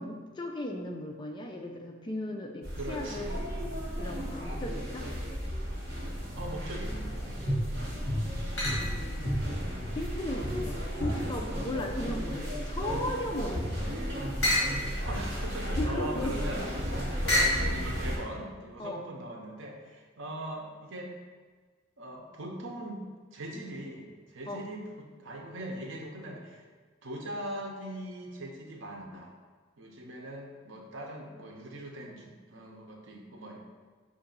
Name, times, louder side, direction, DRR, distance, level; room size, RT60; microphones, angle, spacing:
voice 1, 0.0-3.4 4.0-5.1 7.8-14.0 15.8-16.5 17.6-17.7 18.8-19.0 24.5-24.6, left 1 dB, 25° left, 2 dB, 0.3 m, -37 dB
sound 1, 2.6-18.2, equal, 55° right, 1.3 m, -34 dB
voice 2, 2.7-3.3 6.3-7.4 15.0-21.1 22.0-23.0 23.3-26.6 27.0-29.3 29.8-33.6, right 1 dB, 80° right, 1 dB, 0.7 m, -41 dB
sound 2, 7.1-7.6 8.6-9.2 9.7-12.4 12.8-17.7, left 1 dB, 60° left, 1.2 m, -34 dB
5.0 x 2.6 x 3.9 m, 1.4 s
head